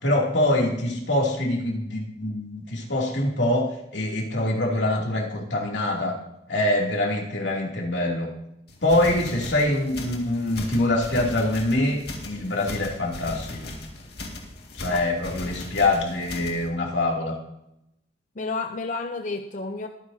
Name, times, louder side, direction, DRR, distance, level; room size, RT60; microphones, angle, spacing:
voice 1, 0.0-6.2 6.5-8.3 8.8-13.7 14.7-17.4, left 1 dB, 80° left, -1 dB, 2.7 m, -24 dB
sound 1, 8.7-16.7, left 2 dB, 60° left, 2.1 m, -38 dB
voice 2, 18.4-19.9, left 3 dB, 45° left, 6 dB, 0.6 m, -31 dB
23.0 x 9.7 x 2.8 m, 0.84 s
head